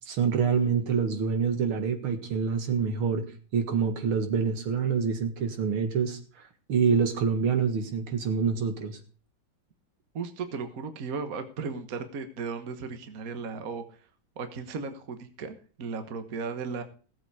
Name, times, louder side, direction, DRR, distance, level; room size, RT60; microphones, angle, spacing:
voice 1, 0.1-3.2 3.5-9.0, right 6 dB, 80° right, 6 dB, 2.6 m, -26 dB
voice 2, 10.1-14.1 14.4-16.8, right 5 dB, 45° right, 8 dB, 1.6 m, -36 dB
17.0 x 7.9 x 4.8 m, 0.38 s
omnidirectional pair, 2.3 m